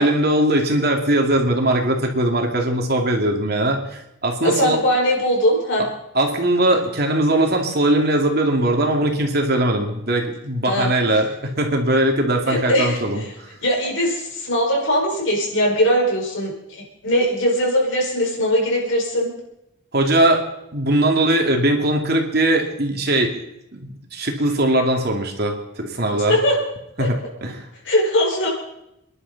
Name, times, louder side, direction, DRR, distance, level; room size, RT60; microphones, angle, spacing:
voice 1, 0.0-4.8 6.1-13.2 19.9-20.4 20.7-23.4 23.7-26.4 27.0-27.1 27.4-27.7, right 1 dB, 50° right, 2 dB, 2.5 m, -20 dB
voice 2, 4.4-5.8 10.6-10.9 12.5-13.0 13.6-19.3 26.3-26.6 27.0-27.1 27.8-28.5, equal, 65° left, -2 dB, 5.3 m, -20 dB
28.5 x 11.0 x 4.1 m, 0.83 s
head